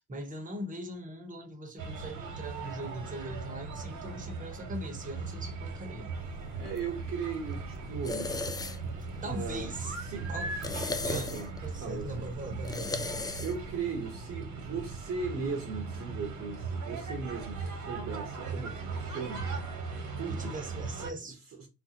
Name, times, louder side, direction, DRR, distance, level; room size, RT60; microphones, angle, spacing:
voice 1, 0.0-6.1 9.2-9.9 10.3-10.5 11.0-11.3 11.6-13.4 20.3-21.4, right 1 dB, 25° right, 1.0 m, -40 dB
sound 1, 1.8-21.1, right 4 dB, 75° right, 1.2 m, -39 dB
sound 2, 6.2-13.8, left 3 dB, 15° left, 0.3 m, -39 dB
voice 2, 6.6-8.4 9.1-10.3 11.1-11.5 11.8-12.3 13.4-19.5 20.2-20.6 21.6-21.7, right 5 dB, 55° right, 1.0 m, -38 dB
3.6 x 2.5 x 2.8 m
cardioid pair, 90°, 30 cm